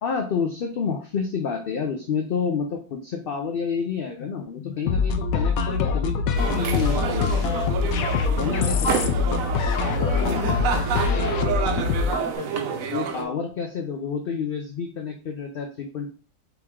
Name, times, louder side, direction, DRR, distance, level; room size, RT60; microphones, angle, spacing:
voice 1, 0.0-6.2 6.5-7.4 8.4-9.3 10.2-10.4 12.9-16.1, left 6 dB, 55° left, 3 dB, 0.6 m, -29 dB
sound 1, 4.9-12.3, left 5 dB, 85° left, 1.0 m, -24 dB
sound 2, 6.4-13.2, right 7 dB, 80° right, 1.0 m, -29 dB
voice 2, 8.1-8.9 9.8-13.3, right 1 dB, 15° right, -7 dB, 2.6 m, -36 dB
4.6 x 3.0 x 3.5 m, 0.37 s
omnidirectional pair, 1.4 m